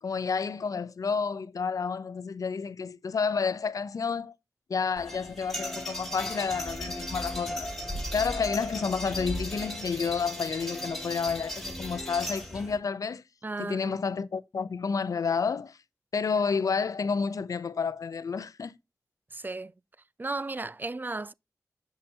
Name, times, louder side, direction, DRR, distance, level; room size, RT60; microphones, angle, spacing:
voice 1, 0.0-4.3 4.7-7.7 8.1-13.2 13.6-15.8 16.1-18.8, left 5 dB, 80° left, 0.5 m, -30 dB
sound 1, 5.0-12.8, equal, 5° left, 2.9 m, -36 dB
voice 2, 13.4-14.0 19.3-19.7 20.2-21.3, right 3 dB, 35° right, 0.4 m, -34 dB
6.6 x 5.7 x 2.8 m
cardioid pair, 45°, 6 cm